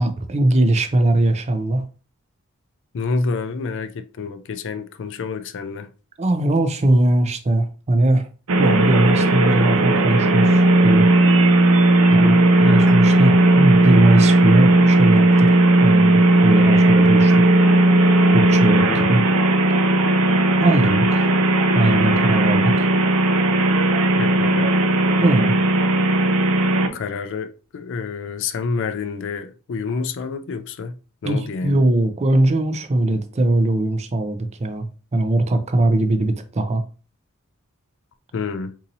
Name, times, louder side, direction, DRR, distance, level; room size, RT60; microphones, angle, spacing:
voice 1, 0.0-1.8 6.2-8.3 8.6-11.1 12.1-17.4 18.3-19.2 20.6-21.3 21.7-22.9 25.2-25.5 31.2-34.9 35.1-36.8, right 1 dB, 30° right, 0.4 m, -20 dB
voice 2, 2.9-5.9 12.1-12.8 18.9-19.0 24.2-24.7 26.9-30.9 31.2-31.8 38.3-38.7, left 4 dB, 60° left, 0.4 m, -28 dB
sound 1, 8.5-26.9, right 2 dB, 80° right, 0.6 m, -16 dB
4.0 x 2.7 x 2.6 m
head